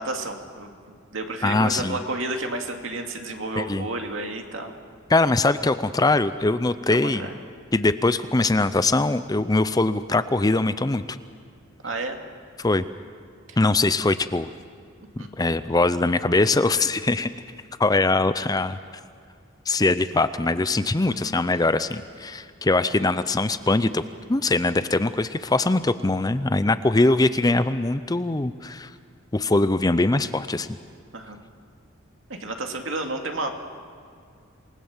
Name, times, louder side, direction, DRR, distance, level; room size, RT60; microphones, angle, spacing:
voice 1, 0.0-4.7 6.9-7.3 11.8-12.2 13.5-13.6 15.2-15.3 21.1-21.3 31.1-31.4 32.3-33.5, right 2 dB, 70° right, 3 dB, 2.4 m, -31 dB
voice 2, 1.4-2.0 3.6-3.9 5.1-7.3 7.7-11.0 12.6-12.8 13.6-14.5 15.4-17.3 17.8-18.8 19.7-24.0 24.3-28.9 29.3-30.7, left 2 dB, 20° left, 12 dB, 0.5 m, -22 dB
27.5 x 19.5 x 7.3 m, 2.2 s
head